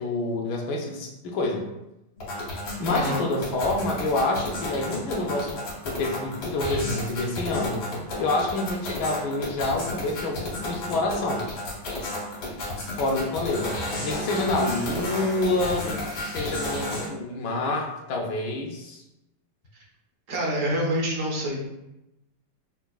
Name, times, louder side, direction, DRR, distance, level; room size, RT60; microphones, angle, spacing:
voice 1, 0.0-1.7 2.8-7.9 8.2-11.4 13.0-19.0, left 2 dB, 75° left, 1 dB, 1.2 m, -27 dB
sound 1, 2.2-17.1, left 1 dB, 90° left, 1.8 m, -32 dB
voice 2, 2.9-3.2 20.3-21.6, equal, 65° right, -2 dB, 0.8 m, -26 dB
5.5 x 2.2 x 2.2 m, 0.91 s
omnidirectional pair, 2.0 m